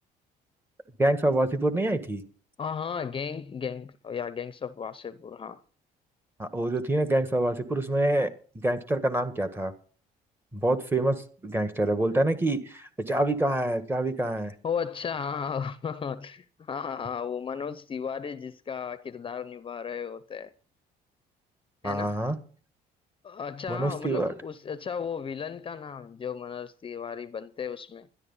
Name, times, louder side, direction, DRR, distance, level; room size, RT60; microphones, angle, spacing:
voice 1, 1.0-2.2 6.4-8.3 8.6-9.7 10.5-14.5 21.8-22.4 23.7-24.3, right 1 dB, 15° right, 1.6 m, -26 dB
voice 2, 2.6-5.6 14.6-20.5 21.8-22.2 23.2-28.1, left 6 dB, 30° left, 0.7 m, -35 dB
13.0 x 10.5 x 5.5 m
cardioid pair, 110°, 17 cm